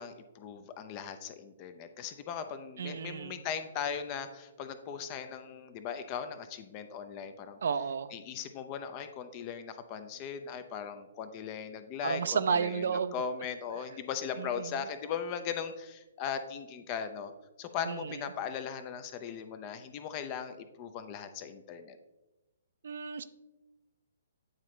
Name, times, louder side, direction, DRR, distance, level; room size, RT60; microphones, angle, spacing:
voice 1, 0.0-7.6 8.1-17.3 17.6-22.0, left 7 dB, 30° left, 9 dB, 0.6 m, -38 dB
voice 2, 2.8-3.3 7.6-8.1 12.0-13.1 14.4-14.5 17.9-18.0 22.8-23.2, right 6 dB, 60° right, 13 dB, 0.4 m, -31 dB
8.9 x 3.8 x 3.2 m, 1.0 s
figure-of-eight pair, 130°, 0 cm